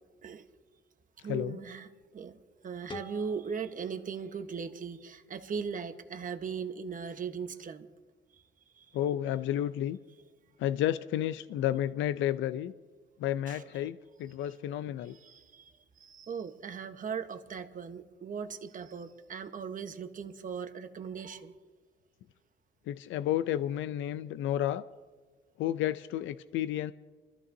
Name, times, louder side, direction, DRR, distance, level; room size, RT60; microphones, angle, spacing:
voice 1, 1.2-2.4 2.6-7.9 8.8-8.9 13.5-13.6 15.1-15.7 16.0-21.5, right 6 dB, 40° right, 8 dB, 1.1 m, -39 dB
sound 1, 2.9-5.7, left 2 dB, 25° left, 0.8 m, -49 dB
voice 2, 8.9-10.0 10.6-12.7 13.2-15.2 22.9-24.8 25.6-26.9, left 12 dB, 75° left, 14 dB, 0.4 m, -31 dB
26.0 x 14.0 x 2.7 m, 1.4 s
cardioid pair, 90°, 20 cm